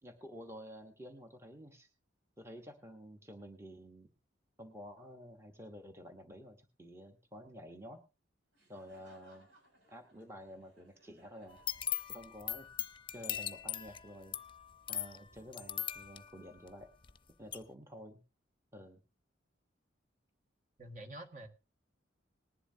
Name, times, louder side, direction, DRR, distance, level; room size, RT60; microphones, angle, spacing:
voice 1, 0.0-1.9 2.4-4.1 4.6-8.0 8.7-9.5 9.9-11.6 12.1-12.7 13.1-14.4 14.9-16.9 17.4-18.2 18.7-19.0, equal, 15° right, 5 dB, 1.2 m, -50 dB
Laughter, 8.5-12.5, right 1 dB, 80° right, 6.6 m, -66 dB
sound 1, 11.5-17.2 17.5-17.6, left 10 dB, 30° left, 0.8 m, -40 dB
voice 2, 20.8-21.5, right 1 dB, 45° right, 6 dB, 1.8 m, -47 dB
19.5 x 11.0 x 2.8 m, 0.30 s
head